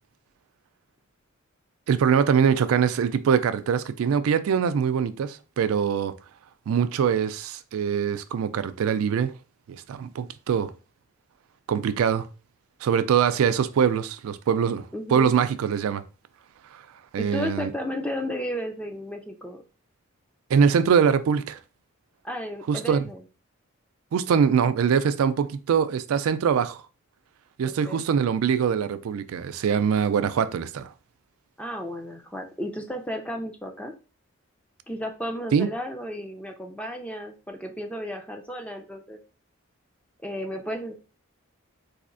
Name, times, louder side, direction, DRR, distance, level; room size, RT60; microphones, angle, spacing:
voice 1, 1.9-6.1 6.7-9.3 9.9-10.7 11.7-12.3 12.8-14.8 15.1-16.0 16.7-16.8 17.1-17.7 20.5-21.6 22.7-23.0 24.1-26.8 27.6-30.9 35.5-35.7, right 7 dB, 85° right, 0.3 m, -23 dB
voice 2, 14.9-15.3 17.2-19.6 22.2-23.2 27.6-28.0 31.6-33.9 34.9-39.2 40.2-40.9, equal, 5° left, 0.4 m, -33 dB
4.1 x 2.7 x 2.5 m
head